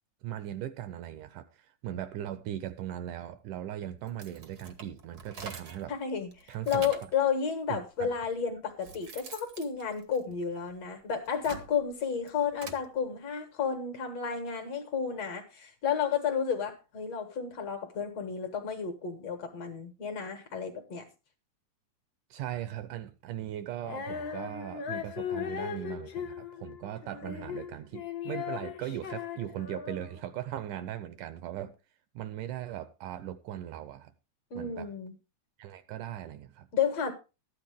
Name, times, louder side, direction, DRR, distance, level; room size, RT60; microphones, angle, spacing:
voice 1, 0.2-6.0 6.5-6.9 7.7-8.1 22.3-31.8 32.2-34.1 34.5-34.9 35.6-36.7, right 11 dB, 75° right, 2.1 m, -39 dB
sound 1, 4.1-5.9 6.3-7.2 8.0-8.1 8.6-10.7 11.2-12.9, right 4 dB, 55° right, 1.0 m, -46 dB
voice 2, 5.9-21.1 34.5-35.1 36.7-37.1, left 7 dB, 55° left, 2.3 m, -32 dB
Female singing, 23.8-30.2, left 8 dB, 80° left, 1.0 m, -38 dB
13.5 x 10.5 x 3.5 m
omnidirectional pair, 4.0 m